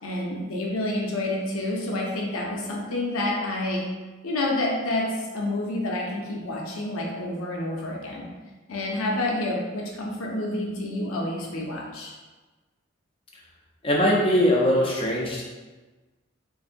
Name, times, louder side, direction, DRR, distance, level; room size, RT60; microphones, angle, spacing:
voice 1, 0.0-3.9 4.2-8.3 8.7-12.1, left 1 dB, 85° left, -1 dB, 0.6 m, -28 dB
voice 2, 13.8-15.4, equal, 25° left, -2 dB, 0.5 m, -21 dB
3.8 x 2.6 x 2.5 m, 1.3 s
head